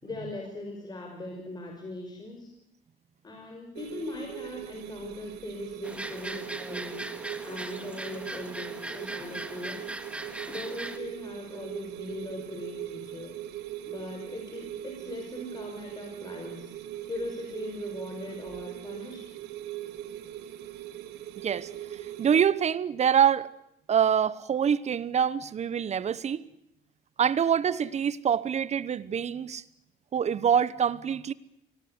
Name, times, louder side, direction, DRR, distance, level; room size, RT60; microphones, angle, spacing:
voice 1, 0.0-2.5 3.2-9.9 10.5-13.4 13.9-16.7 17.0-19.2, left 2 dB, 25° left, 5.8 m, -40 dB
sound 1, 3.8-22.4, right 12 dB, 85° right, 2.3 m, -41 dB
sound 2, 5.8-11.0, right 1 dB, 5° right, 2.0 m, -39 dB
voice 2, 22.2-23.5 23.9-26.5 27.2-29.6 30.1-31.3, right 8 dB, 40° right, 1.1 m, -25 dB
24.5 x 19.0 x 9.7 m
cardioid pair, 110°, 17 cm